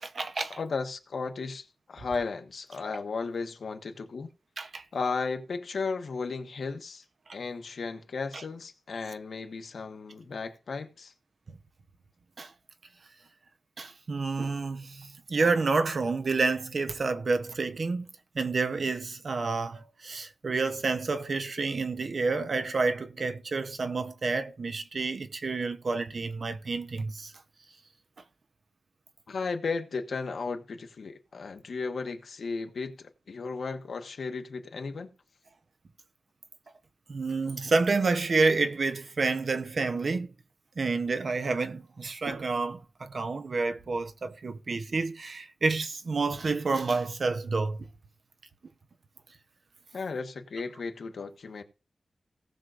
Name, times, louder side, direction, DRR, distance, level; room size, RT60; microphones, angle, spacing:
voice 1, 0.0-0.6 4.6-4.8 8.3-8.4 12.4-12.5 13.8-18.1 18.3-27.3 37.1-40.3 40.8-47.8, right 3 dB, 55° right, 0.7 m, -29 dB
voice 2, 0.6-4.3 4.9-7.0 7.3-11.1 29.3-35.1 49.9-51.6, left 4 dB, 80° left, 1.2 m, -35 dB
18.0 x 6.3 x 2.5 m
wide cardioid pair, 140°, 0 cm